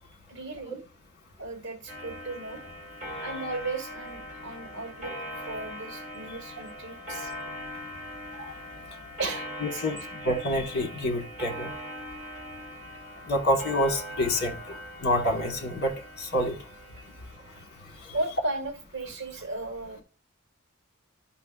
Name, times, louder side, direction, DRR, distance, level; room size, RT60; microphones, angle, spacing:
voice 1, 0.3-0.8 1.4-2.6 3.2-7.3 9.2-9.9 18.1-20.0, right 2 dB, 60° right, 1.4 m, -35 dB
Clock, 1.9-18.0, equal, 35° right, 2.6 m, -41 dB
voice 2, 9.6-10.0 10.2-11.7 13.3-14.6 15.0-15.9 16.2-16.6, left 1 dB, 50° left, 1.4 m, -27 dB
11.5 x 5.8 x 2.4 m
head